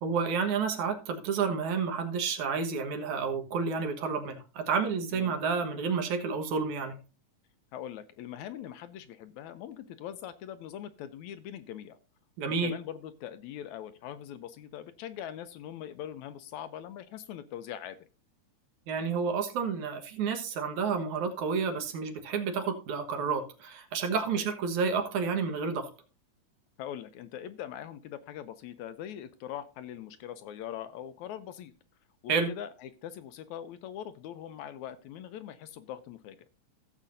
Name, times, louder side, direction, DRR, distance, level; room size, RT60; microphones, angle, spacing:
voice 1, 0.0-7.0 12.4-12.7 18.9-25.9 32.3-32.5, right 5 dB, 70° right, 5 dB, 2.7 m, -30 dB
voice 2, 7.7-12.0 12.6-18.1 24.3-24.5 26.8-31.7 32.2-36.4, left 10 dB, 75° left, 11 dB, 1.9 m, -42 dB
15.5 x 7.4 x 2.6 m, 0.33 s
omnidirectional pair, 3.6 m